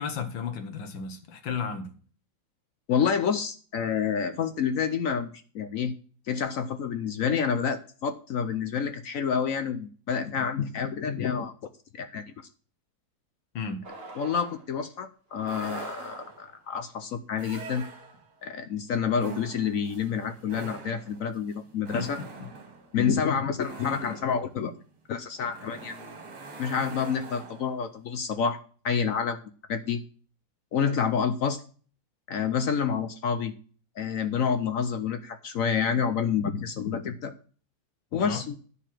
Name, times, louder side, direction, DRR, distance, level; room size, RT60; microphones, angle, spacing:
voice 1, 0.0-1.9 13.5-13.8 21.9-22.5 38.2-38.4, left 6 dB, 80° left, 2.0 m, -34 dB
voice 2, 2.9-5.9 6.3-11.5 12.0-12.2 14.2-17.8 18.4-22.2 22.9-24.7 25.1-25.9 26.6-28.6 28.8-29.4 29.7-30.0 30.7-31.6 32.3-33.5 34.0-37.3 38.1-38.6, left 7 dB, 65° left, 0.8 m, -28 dB
sound 1, 13.8-14.7 15.3-16.5, right 3 dB, 30° right, 1.9 m, -43 dB
sound 2, 15.5-16.5 17.3-18.4 19.1-27.9, right 4 dB, 60° right, 2.3 m, -44 dB
9.9 x 4.7 x 7.3 m
omnidirectional pair, 2.1 m